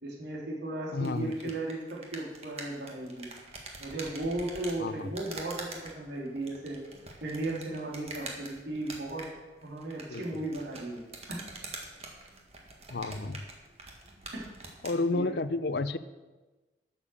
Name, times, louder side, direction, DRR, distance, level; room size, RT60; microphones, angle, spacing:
voice 1, 0.0-3.3 3.8-6.8 7.2-9.3 9.6-11.0 11.3-11.4 14.3-14.5 15.1-15.4, right 2 dB, 75° right, -3 dB, 3.2 m, -36 dB
voice 2, 0.9-1.5 4.8-5.1 10.1-10.4 12.9-13.4 14.8-16.0, left 3 dB, 70° left, 14 dB, 0.6 m, -31 dB
sound 1, 1.0-15.0, right 3 dB, 35° right, 1.7 m, -45 dB
12.0 x 7.0 x 6.9 m, 1.2 s
head